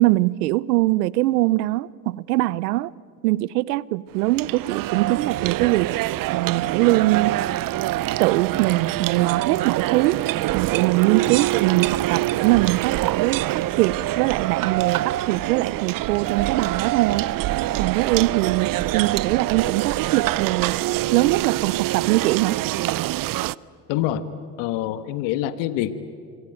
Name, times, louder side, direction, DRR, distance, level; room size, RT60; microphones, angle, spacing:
voice 1, 0.0-2.9 3.2-5.9 6.3-7.4 8.2-10.2 10.5-17.3 17.8-20.8 21.1-22.6, right 18 dB, 90° right, 0.7 m, -22 dB
sound 1, 4.1-23.5, right 16 dB, 50° right, 0.6 m, -25 dB
voice 2, 23.9-24.2 24.6-25.9, left 13 dB, 70° left, 1.5 m, -25 dB
27.0 x 24.0 x 9.0 m
supercardioid pair, 85°, 45 cm